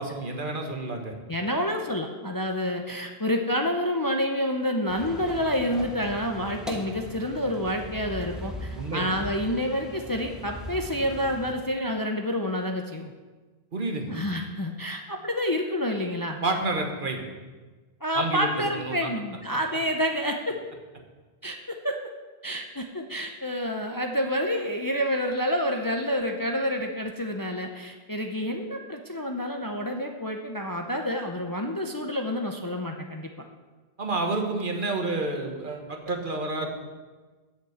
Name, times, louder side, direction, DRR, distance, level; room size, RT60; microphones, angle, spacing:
voice 1, 0.0-1.1 8.8-9.2 13.7-14.2 16.4-17.2 18.1-19.1 34.0-36.7, right 2 dB, 55° right, 3 dB, 1.4 m, -29 dB
voice 2, 1.3-13.1 14.1-16.4 18.0-20.6 21.4-22.0 22.4-33.3, equal, 25° left, 3 dB, 0.6 m, -28 dB
sound 1, 4.9-11.5, left 1 dB, ahead, 1.0 m, -39 dB
8.2 x 6.8 x 7.9 m, 1.3 s
omnidirectional pair, 1.0 m